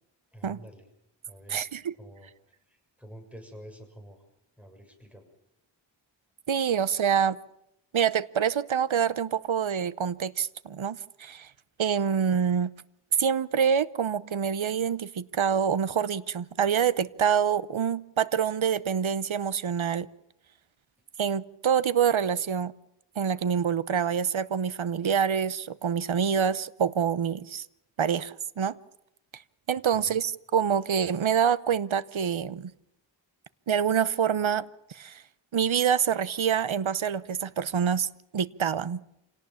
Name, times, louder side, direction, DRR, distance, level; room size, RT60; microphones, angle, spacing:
voice 1, 0.3-0.9 1.3-1.7 2.0-2.3 2.7-4.2 4.6-5.3 29.9-30.2, equal, 5° right, 6.8 m, -48 dB
voice 2, 1.5-1.9 6.5-7.4 7.9-11.5 11.8-12.7 13.2-20.1 21.2-22.7 23.2-27.7 28.0-28.8 29.7-32.7 33.7-35.2 35.5-39.0, right 7 dB, 80° right, 0.9 m, -26 dB
27.0 x 18.0 x 7.2 m
wide cardioid pair, 55°, 47 cm